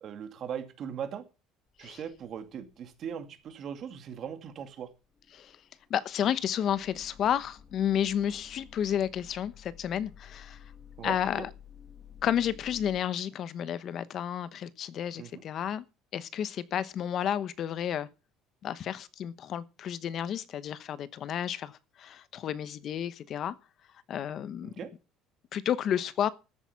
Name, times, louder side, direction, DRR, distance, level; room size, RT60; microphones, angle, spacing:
voice 1, 0.0-1.3 1.8-4.9 11.0-11.5 15.2-15.4 24.6-24.9, right 8 dB, 45° right, 2.3 m, -39 dB
sound 1, 1.8-2.5 2.7-3.1 3.5-3.6 3.8-3.9 4.6-13.0, left 8 dB, 25° left, 2.2 m, -52 dB
voice 2, 5.9-10.6 11.0-11.5 12.2-15.8 16.1-18.1 18.6-23.6 24.1-24.7 25.5-26.3, left 9 dB, 45° left, 1.0 m, -31 dB
14.0 x 8.5 x 5.7 m
cardioid pair, 130°, 0 cm